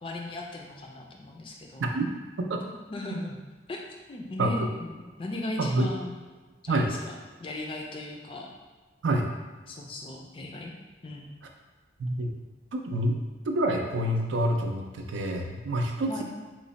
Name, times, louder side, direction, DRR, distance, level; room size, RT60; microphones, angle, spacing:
voice 1, 0.0-2.0 2.9-3.4 3.7-3.8 4.1-6.2 6.6-7.1 7.4-8.5 9.7-10.7 11.0-11.3 16.1-16.2, left 2 dB, 30° left, 0 dB, 0.4 m, -37 dB
voice 2, 12.0-12.3 12.7-13.2 13.5-16.2, right 1 dB, 80° right, 3 dB, 0.4 m, -27 dB
3.1 x 2.1 x 3.9 m, 1.4 s
head